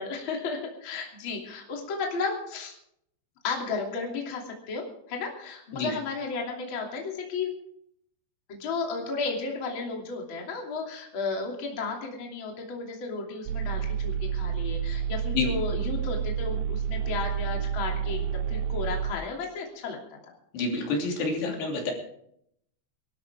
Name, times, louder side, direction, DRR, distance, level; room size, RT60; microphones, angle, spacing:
voice 1, 0.0-2.7 3.4-7.5 8.5-20.3, left 4 dB, 30° left, 0 dB, 3.0 m, -33 dB
sound 1, 13.5-19.1, right 8 dB, 90° right, 3.0 m, -29 dB
voice 2, 20.5-21.9, left 3 dB, 70° left, 0 dB, 5.0 m, -28 dB
24.0 x 13.0 x 3.6 m, 0.71 s
omnidirectional pair, 5.0 m